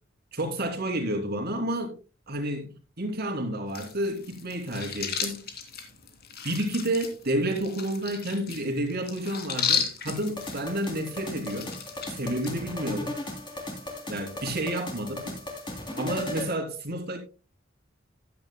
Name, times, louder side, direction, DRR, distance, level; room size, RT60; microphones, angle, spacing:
voice 1, 0.3-1.9 2.3-5.4 6.4-11.7 12.1-13.2 14.1-15.4 16.0-17.2, right 1 dB, 55° right, 3.0 m, -30 dB
sound 1, 3.7-12.5, left 7 dB, 55° left, 2.4 m, -34 dB
sound 2, 10.1-16.5, left 1 dB, 25° left, 3.2 m, -36 dB
14.5 x 10.5 x 2.2 m
head